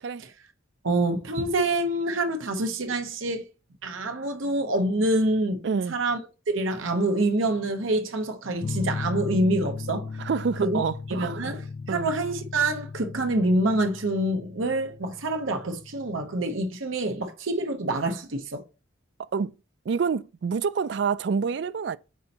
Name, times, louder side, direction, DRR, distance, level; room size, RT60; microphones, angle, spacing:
voice 1, 0.8-3.5 3.8-5.6 5.9-6.2 6.5-10.1 10.6-10.8 11.1-18.6, right 2 dB, 85° right, 0.9 m, -26 dB
voice 2, 5.6-6.0 10.2-11.5 11.9-12.1 19.2-19.5 19.9-22.0, right 5 dB, 60° right, 0.3 m, -28 dB
sound 1, 8.6-16.3, left 4 dB, 50° left, 0.4 m, -36 dB
8.2 x 4.4 x 2.9 m
head